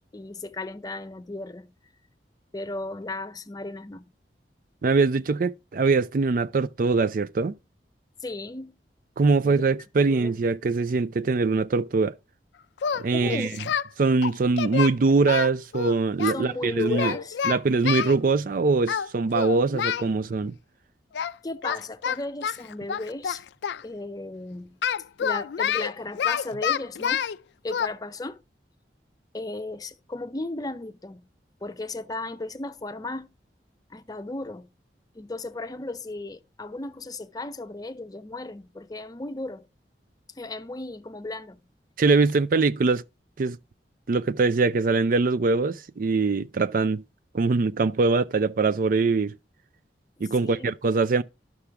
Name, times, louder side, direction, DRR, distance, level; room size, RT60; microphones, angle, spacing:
voice 1, 0.1-1.7 2.5-4.1 8.2-8.7 9.4-9.7 10.0-10.3 13.1-13.6 16.3-17.4 21.4-23.4 23.8-24.8 25.2-27.3 27.6-28.4 29.3-31.3 31.6-33.3 33.9-34.7 35.1-39.7 40.4-41.6 50.4-50.7, left 2 dB, 20° left, 0.5 m, -35 dB
voice 2, 4.8-7.5 9.2-12.2 12.9-13.5 14.0-17.1 17.4-20.5 42.0-43.0 43.4-43.6 44.1-47.0 47.3-49.3 50.2-51.2, right 4 dB, 50° right, 0.4 m, -23 dB
Singing, 12.8-13.9 14.2-16.4 16.9-18.2 18.9-19.1 19.3-20.1 21.1-21.3 21.6-23.8 24.8-27.4 27.7-27.9, left 8 dB, 75° left, 0.4 m, -28 dB
11.5 x 5.9 x 3.4 m
head